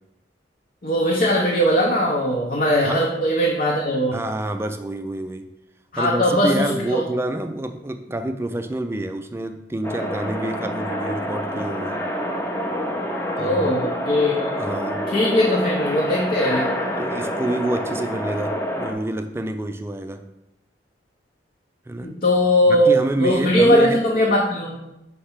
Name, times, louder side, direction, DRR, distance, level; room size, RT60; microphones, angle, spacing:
voice 1, 0.8-4.2 5.9-7.0 13.3-14.7 15.1-16.7 22.0-24.8, equal, 50° left, -3 dB, 0.8 m, -20 dB
voice 2, 4.1-5.5 6.0-12.0 13.4-13.7 14.6-15.0 17.0-20.2 21.9-22.1 22.7-24.0, right 1 dB, 15° right, 7 dB, 0.4 m, -27 dB
sound 1, 9.8-18.9, equal, 15° left, 0.7 m, -27 dB
5.6 x 3.3 x 5.7 m, 0.90 s
head